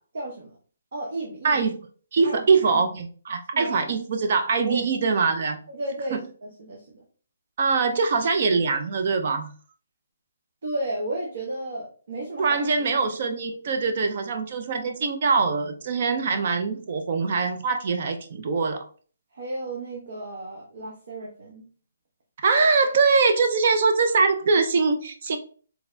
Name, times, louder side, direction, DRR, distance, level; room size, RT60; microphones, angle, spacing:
voice 1, 0.1-0.5 0.9-1.6 2.2-2.8 3.5-3.8 4.6-4.8 5.7-7.0 10.6-13.0 19.3-21.6, right 1 dB, 60° right, -1 dB, 1.0 m, -33 dB
voice 2, 2.1-5.6 7.6-9.5 12.4-18.8 22.4-25.4, right 4 dB, 40° right, 6 dB, 0.5 m, -23 dB
4.1 x 3.4 x 2.6 m, 0.42 s
hypercardioid pair, 170°, 0 cm